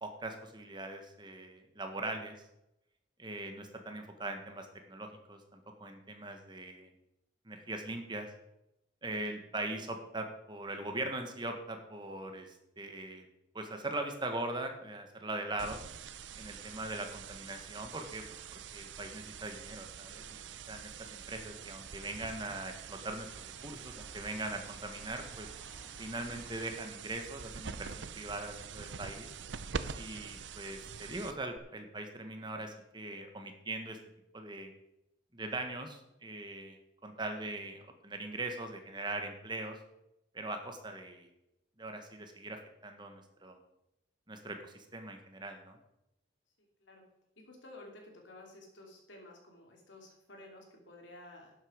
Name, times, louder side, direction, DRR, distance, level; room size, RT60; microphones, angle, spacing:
voice 1, 0.0-2.4 3.2-6.9 7.4-8.3 9.0-13.3 13.5-15.8 16.4-18.2 18.5-25.5 26.0-29.3 29.9-34.0 34.3-34.7 35.3-39.8 40.3-41.3 41.8-43.6 44.3-45.8, right 2 dB, 25° right, 5 dB, 1.5 m, -41 dB
sound 1, 15.6-31.6, right 6 dB, 75° right, 0.6 m, -45 dB
sound 2, 21.2-26.8, right 1 dB, 10° left, 3.4 m, -57 dB
voice 2, 47.5-51.5, left 1 dB, 85° left, 0 dB, 3.0 m, -53 dB
11.5 x 8.1 x 5.1 m, 0.85 s
head